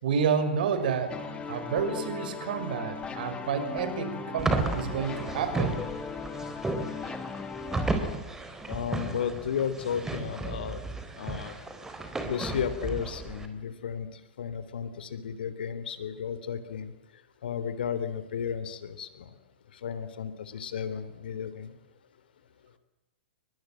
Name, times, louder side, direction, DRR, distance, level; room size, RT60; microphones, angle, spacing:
voice 1, 0.0-1.2 1.5-5.8, right 6 dB, 50° right, 9 dB, 6.1 m, -29 dB
Engine, 0.7-5.8, right 3 dB, 70° right, 7.2 m, -47 dB
sound 1, 1.1-8.0, left 6 dB, 15° left, 2.1 m, -38 dB
sound 2, 4.4-13.5, right 2 dB, 10° right, 4.1 m, -33 dB
voice 2, 8.7-10.8 11.2-11.5 12.2-14.1 14.4-16.9 17.4-19.3 19.8-21.7, left 7 dB, 55° left, 13 dB, 3.4 m, -33 dB
30.0 x 24.0 x 7.7 m, 1.0 s
figure-of-eight pair, 110°, 6 cm